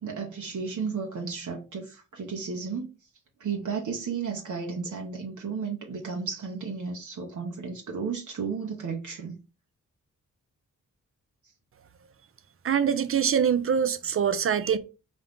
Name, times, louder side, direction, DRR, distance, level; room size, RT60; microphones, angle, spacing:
voice 1, 0.0-2.9 3.4-9.4, right 5 dB, 60° right, 0.9 m, -33 dB
voice 2, 12.6-14.8, right 8 dB, 40° right, 0.5 m, -24 dB
4.2 x 2.3 x 3.4 m
supercardioid pair, 45°, 34 cm